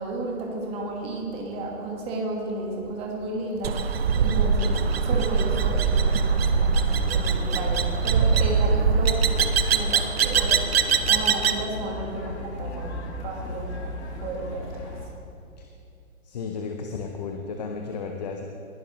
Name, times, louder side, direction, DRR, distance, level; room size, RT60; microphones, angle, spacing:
voice 1, 0.0-10.6 11.1-15.0, right 2 dB, 15° right, 0 dB, 1.4 m, -33 dB
sound 1, 3.6-11.7, right 5 dB, 45° right, 0.7 m, -22 dB
sound 2, 5.1-15.1, left 2 dB, 50° left, 2.0 m, -36 dB
voice 2, 16.2-18.4, left 5 dB, 30° left, 3 dB, 0.7 m, -33 dB
20.0 x 11.5 x 3.0 m, 2.6 s
hypercardioid pair, 150°, 43 cm